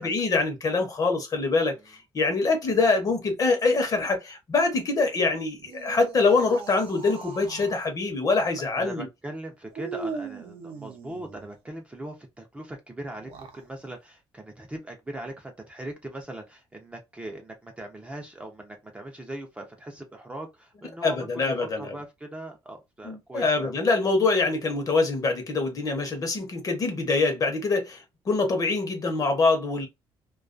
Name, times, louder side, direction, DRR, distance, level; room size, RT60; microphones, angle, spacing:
voice 1, 0.0-9.1 21.0-21.9 23.0-29.9, left 3 dB, 35° left, 0.8 m, -24 dB
sound 1, 5.6-7.9 9.7-11.5 13.1-13.7, right 4 dB, 60° right, 0.7 m, -39 dB
voice 2, 8.5-23.8, right 1 dB, 15° right, 0.5 m, -40 dB
2.3 x 2.2 x 2.4 m
cardioid pair, 125°, 10 cm